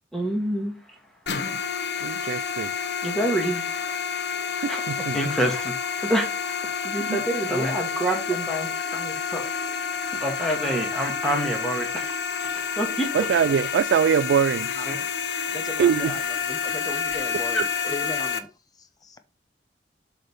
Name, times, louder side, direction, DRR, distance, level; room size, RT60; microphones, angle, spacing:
voice 1, 0.1-1.0 3.0-3.7 4.7-4.8 5.1-9.4 10.2-12.1 12.4-13.3 14.8-15.0, right 1 dB, ahead, 1.6 m, -27 dB
sound 1, 1.3-18.4, left 6 dB, 80° left, 0.8 m, -29 dB
voice 2, 2.0-2.7 4.6-5.2 7.0-7.2 13.1-14.7 15.8-16.1, right 7 dB, 90° right, 0.3 m, -23 dB
voice 3, 15.5-18.5 18.7-19.2, left 3 dB, 20° left, 0.7 m, -37 dB
7.4 x 3.6 x 5.4 m
head